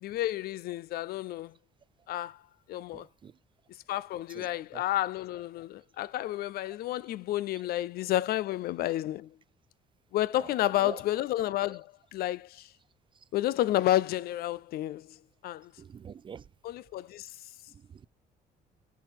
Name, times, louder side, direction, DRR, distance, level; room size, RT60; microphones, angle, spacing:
voice 1, 0.0-1.5 2.1-2.4 2.7-3.1 3.9-9.4 10.1-12.7 13.3-15.2 15.4-15.7 16.6-17.3, left 14 dB, 65° left, 0.4 m, -31 dB
voice 2, 2.9-3.3 4.3-4.8 10.4-10.5 10.8-11.0 15.8-16.4 17.7-18.1, right 7 dB, 30° right, 0.4 m, -45 dB
11.5 x 4.7 x 5.2 m
cardioid pair, 110°, 17 cm